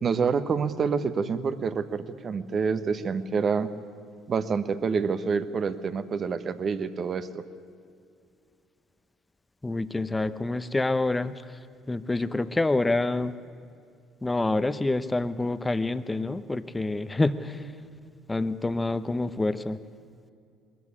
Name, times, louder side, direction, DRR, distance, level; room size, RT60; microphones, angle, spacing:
voice 1, 0.0-3.7 4.3-7.4, right 5 dB, 40° right, 12 dB, 1.2 m, -27 dB
voice 2, 9.6-11.6 11.9-13.4 14.2-17.7 18.3-19.8, left 2 dB, 15° left, 13 dB, 0.8 m, -27 dB
21.0 x 14.0 x 9.8 m, 2.4 s
hypercardioid pair, 65°, 0 cm